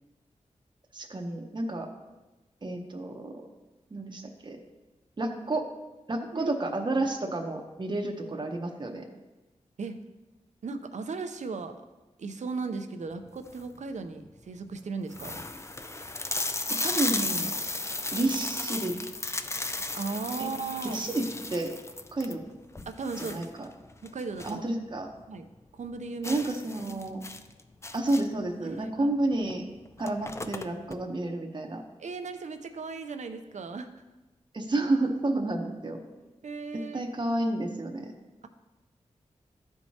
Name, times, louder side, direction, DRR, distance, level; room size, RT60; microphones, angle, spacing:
voice 1, 0.9-1.9 2.6-3.3 3.9-4.6 5.2-5.6 6.1-9.0 16.7-17.5 18.1-18.9 20.4-20.5 20.8-21.7 22.1-22.4 23.2-23.7 24.4-25.1 26.2-27.2 27.9-29.6 30.0-31.8 34.5-36.0 36.7-38.1, right 2 dB, 40° right, 2 dB, 0.8 m, -30 dB
voice 2, 10.6-11.8 12.2-15.4 19.9-21.0 22.3-22.4 22.9-23.5 24.0-24.6 25.3-25.4 25.7-26.4 28.6-29.1 32.0-33.9 36.4-37.0, right 4 dB, 70° right, 8 dB, 0.6 m, -36 dB
sound 1, 13.3-13.8 14.4-14.5 14.7-14.8 15.1-24.7 25.0-25.1 25.5-25.6 26.2-28.5 29.4-29.6 29.8-31.0, left 2 dB, 20° left, 0.4 m, -35 dB
12.5 x 4.6 x 2.8 m, 1.1 s
cardioid pair, 60°, 12 cm